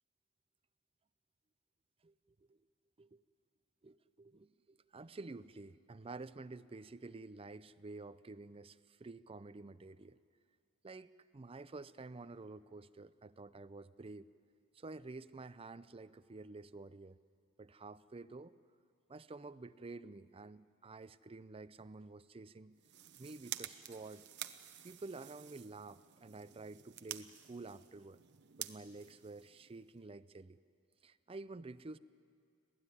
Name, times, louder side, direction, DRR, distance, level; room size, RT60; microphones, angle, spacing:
voice 1, 3.8-10.2 10.8-14.3 14.7-17.2 17.6-18.5 19.1-22.8 23.2-24.2 24.8-28.2 28.6-30.6 31.0-32.0, right 3 dB, 25° right, 14 dB, 0.5 m, -50 dB
sound 1, 22.7-30.0, right 12 dB, 55° right, 0.8 m, -50 dB
25.5 x 16.5 x 9.8 m, 2.2 s
head